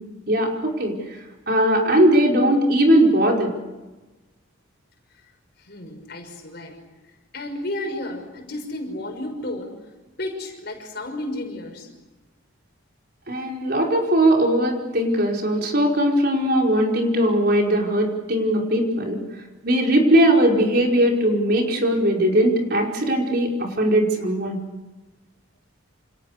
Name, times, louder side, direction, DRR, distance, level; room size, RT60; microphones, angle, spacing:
voice 1, 0.3-1.2 1.5-3.5 13.3-19.2 19.6-24.6, right 1 dB, 50° right, 0 dB, 5.1 m, -19 dB
voice 2, 5.7-6.8 7.3-9.8 10.2-11.9, left 1 dB, 50° left, 5 dB, 5.9 m, -32 dB
28.5 x 28.0 x 6.8 m, 1.1 s
head